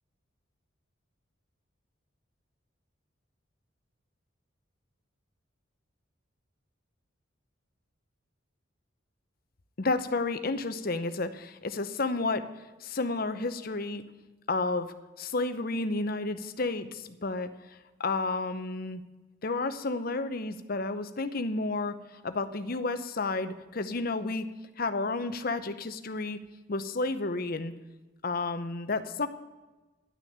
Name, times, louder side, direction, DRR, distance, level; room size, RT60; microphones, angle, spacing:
voice 1, 9.8-12.5 12.8-14.0 14.5-17.5 18.0-19.0 19.4-22.0 22.2-24.5 24.8-26.4 26.7-27.7 28.2-29.3, left 3 dB, 45° left, 10 dB, 0.8 m, -31 dB
11.5 x 6.4 x 8.6 m, 1.2 s
head